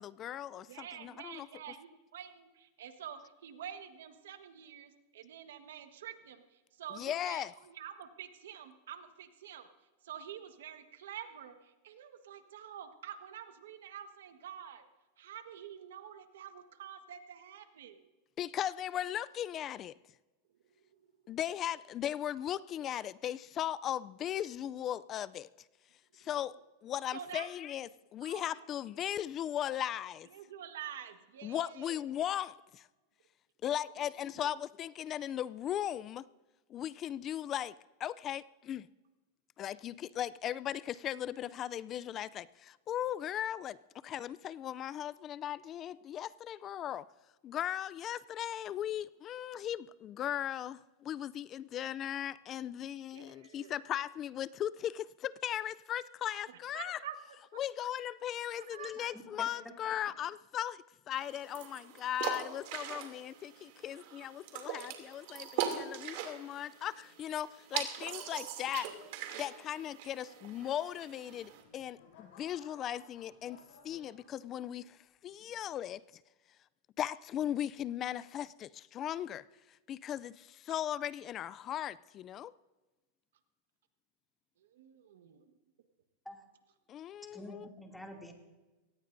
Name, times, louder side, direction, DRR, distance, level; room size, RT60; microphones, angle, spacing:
voice 1, 0.0-1.5 6.9-7.5 18.4-19.9 21.3-25.5 26.1-26.6 26.8-30.3 31.4-32.9 33.6-36.2 36.7-38.9 39.6-43.8 44.0-47.1 47.4-57.0 57.5-68.9 69.4-76.0 77.0-79.5 79.9-82.5 86.9-87.7, left 11 dB, 35° left, 0.4 m, -38 dB
voice 2, 0.5-9.7 10.0-14.8 15.2-18.1 21.0-21.1 27.1-27.5 28.2-28.6 30.3-32.0 34.0-34.3 53.1-53.7 56.5-57.1 58.6-59.1 67.7-67.8 68.3-68.4 69.9-70.4 84.6-85.5, right 9 dB, 85° right, 1.4 m, -48 dB
voice 3, 59.1-59.5 59.8-59.9 86.2-86.4 87.3-88.3, left 1 dB, 5° left, 2.6 m, -47 dB
sound 1, 61.1-71.6, right 9 dB, 65° right, 2.7 m, -42 dB
sound 2, 71.3-74.8 75.4-75.7, left 4 dB, 65° left, 5.7 m, -59 dB
23.0 x 18.5 x 2.7 m
supercardioid pair, 130°, 0 cm